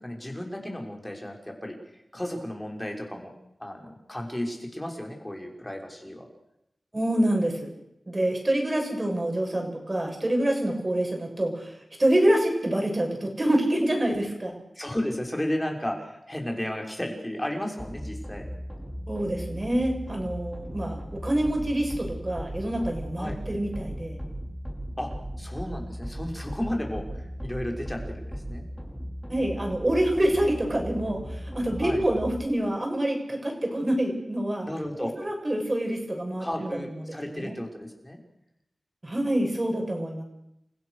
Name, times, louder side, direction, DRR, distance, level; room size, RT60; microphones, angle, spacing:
voice 1, 0.0-3.3 3.6-6.3 14.7-18.5 23.2-23.4 25.0-25.1 25.4-28.7 31.8-32.0 34.6-35.2 36.4-38.2, left 1 dB, 15° left, 2 dB, 5.9 m, -33 dB
voice 2, 6.9-7.7 8.1-14.5 19.1-24.2 29.3-34.7 35.2-36.7 37.1-37.6 39.0-40.2, right 1 dB, 35° right, 2 dB, 6.9 m, -26 dB
sound 1, 17.8-32.4, equal, ahead, 5.4 m, -37 dB
30.0 x 15.5 x 6.7 m, 0.82 s
wide cardioid pair, 55°, 0 cm